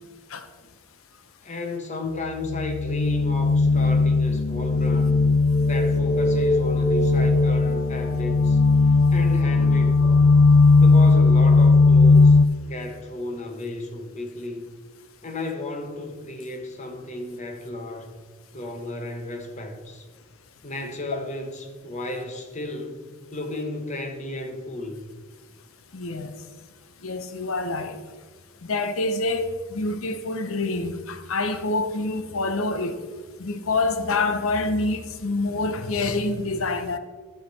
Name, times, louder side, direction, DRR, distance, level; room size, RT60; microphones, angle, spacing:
voice 1, 1.4-5.2 5.6-8.6 9.1-10.3 10.8-12.4 12.6-14.6 15.2-18.1 18.5-20.1 20.6-25.0, left 2 dB, 35° left, 1.0 m, -33 dB
sound 1, 2.4-12.5, left 3 dB, 60° left, 0.4 m, -17 dB
voice 2, 25.9-26.3 27.0-28.0 28.6-32.9 33.4-37.0, left 3 dB, 85° left, 0.8 m, -26 dB
11.5 x 6.5 x 4.1 m
head